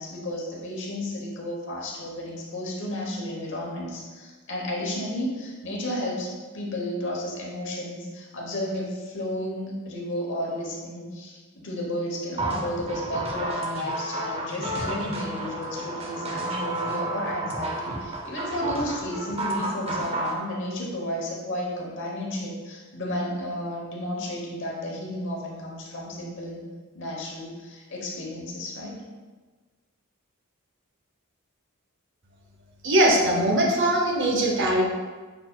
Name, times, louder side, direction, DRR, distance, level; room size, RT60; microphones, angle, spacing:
voice 1, 0.0-26.6 26.9-29.0, left 1 dB, 55° left, -2 dB, 1.0 m, -32 dB
sound 1, 12.4-20.4, right 2 dB, 25° right, 0.5 m, -31 dB
voice 2, 32.8-34.8, right 1 dB, 55° right, 0 dB, 0.8 m, -21 dB
5.6 x 4.1 x 2.2 m, 1.3 s
head